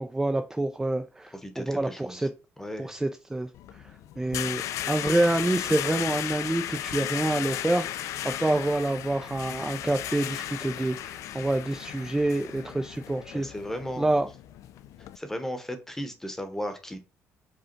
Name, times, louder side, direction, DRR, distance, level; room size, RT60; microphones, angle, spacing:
voice 1, 0.0-2.3 2.8-4.6 4.9-13.5 14.0-14.3, right 2 dB, 10° right, 0.4 m, -27 dB
voice 2, 1.4-2.3 2.6-2.9 13.3-14.1 15.2-17.0, equal, 10° left, 0.9 m, -35 dB
sound 1, 3.5-15.2, left 12 dB, 75° left, 0.3 m, -35 dB
5.1 x 2.3 x 4.4 m
cardioid pair, 110°, 5 cm